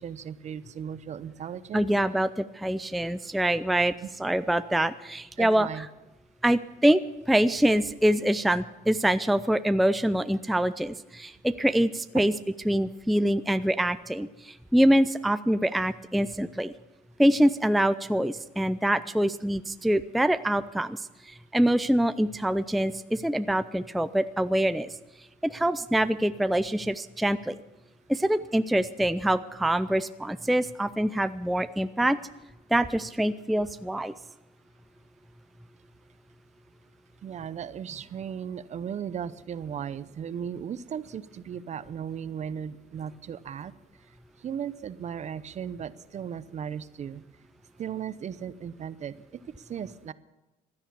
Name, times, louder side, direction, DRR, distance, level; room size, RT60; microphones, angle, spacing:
voice 1, 0.0-1.9 4.0-4.1 5.4-5.9 12.1-12.2 37.2-43.7 44.4-47.2 47.8-49.4 49.7-50.1, right 8 dB, 45° right, 16 dB, 0.7 m, -36 dB
voice 2, 1.7-3.9 4.2-5.7 6.4-7.0 7.3-12.3 12.7-16.7 17.2-21.0 21.3-24.9 25.4-27.6 28.1-32.2 32.7-34.1, right 1 dB, ahead, 12 dB, 0.4 m, -25 dB
16.0 x 11.0 x 6.9 m, 1.1 s
cardioid pair, 110°, 17 cm